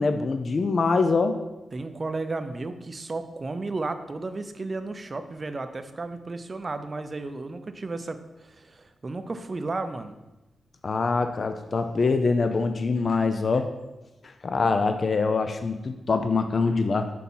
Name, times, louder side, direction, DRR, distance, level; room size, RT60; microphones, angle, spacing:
voice 1, 0.0-1.4 10.8-13.7 14.2-17.1, left 4 dB, 45° left, 8 dB, 0.4 m, -24 dB
voice 2, 1.7-10.2, right 3 dB, 35° right, 9 dB, 0.5 m, -33 dB
6.1 x 4.3 x 5.5 m, 1.0 s
wide cardioid pair, 100°, 0 cm